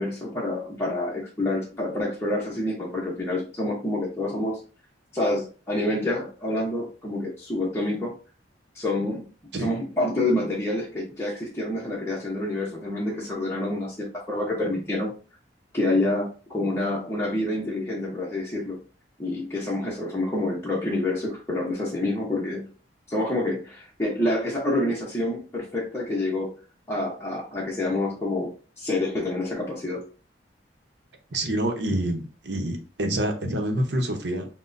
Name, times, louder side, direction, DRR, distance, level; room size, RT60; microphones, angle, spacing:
voice 1, 0.0-4.6 5.1-8.1 8.7-9.2 9.6-15.1 15.7-18.8 19.2-22.7 23.1-26.5 26.9-30.0, left 1 dB, 15° left, -5 dB, 0.8 m, -27 dB
voice 2, 31.3-34.5, right 1 dB, 65° right, 3 dB, 0.9 m, -27 dB
5.9 x 2.2 x 2.6 m, 0.36 s
head